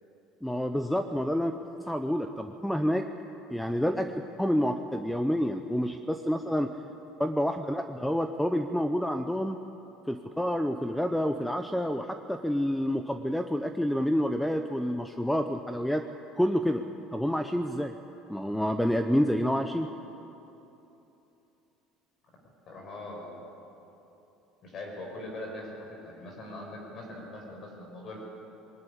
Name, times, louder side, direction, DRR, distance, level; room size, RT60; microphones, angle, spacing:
voice 1, 0.4-1.6 1.9-3.1 3.5-6.7 7.2-9.6 10.1-16.1 16.4-16.8 17.1-17.9 18.3-19.9, equal, 5° left, 7 dB, 0.7 m, -28 dB
voice 2, 22.7-23.4 24.6-28.3, left 1 dB, 40° left, 0 dB, 5.7 m, -41 dB
21.0 x 18.5 x 10.0 m, 3.0 s
cardioid pair, 145°, 0 cm